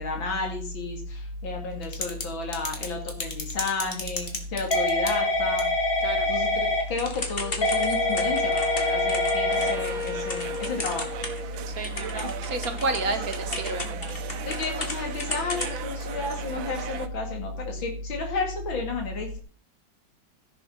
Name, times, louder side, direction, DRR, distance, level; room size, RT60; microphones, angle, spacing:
voice 1, 0.0-5.7 6.3-11.1 12.1-12.3 13.1-13.2 14.4-19.4, left 4 dB, 90° left, 2 dB, 3.0 m, -33 dB
Typing / Telephone, 1.8-2.2 2.5-11.5 11.8-14.9 15.2-15.8, left 2 dB, 30° left, 2.2 m, -26 dB
Wind instrument woodwind instrument, 7.4-11.8, left 5 dB, 70° left, 3.8 m, -35 dB
sound 1, 9.5-17.1, right 9 dB, 90° right, 1.7 m, -38 dB
voice 2, 11.7-13.9, right 2 dB, 50° right, 8 dB, 1.9 m, -30 dB
15.5 x 6.8 x 5.5 m, 0.41 s
omnidirectional pair, 2.1 m